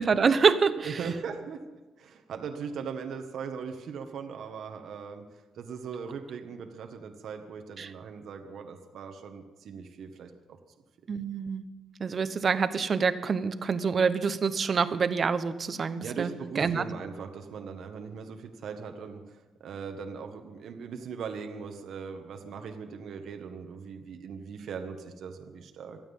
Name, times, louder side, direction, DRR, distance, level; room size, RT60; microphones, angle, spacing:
voice 1, 0.0-1.0 7.8-7.9 11.1-11.6 12.0-16.8, right 5 dB, 45° right, 11 dB, 1.0 m, -26 dB
voice 2, 0.8-1.6 2.0-5.2 5.5-10.3 16.0-19.2 19.6-26.0, right 6 dB, 70° right, 5 dB, 1.5 m, -39 dB
26.0 x 9.2 x 5.6 m, 1.2 s
cardioid pair, 90°, 0 cm